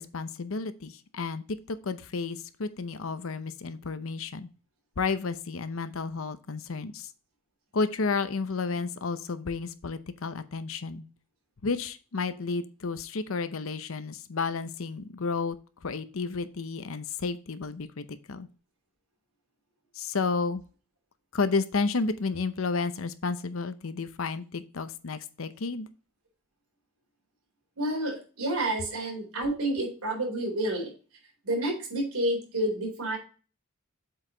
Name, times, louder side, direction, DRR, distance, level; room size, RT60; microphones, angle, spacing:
voice 1, 0.0-1.4 1.7-4.5 5.0-7.1 7.7-11.1 11.6-15.6 15.8-18.5 19.9-20.6 21.3-25.9, left 4 dB, 65° left, 12 dB, 0.7 m, -31 dB
voice 2, 27.8-30.9 31.4-33.2, right 1 dB, 85° right, -1 dB, 3.8 m, -29 dB
7.7 x 4.8 x 3.8 m, 0.36 s
head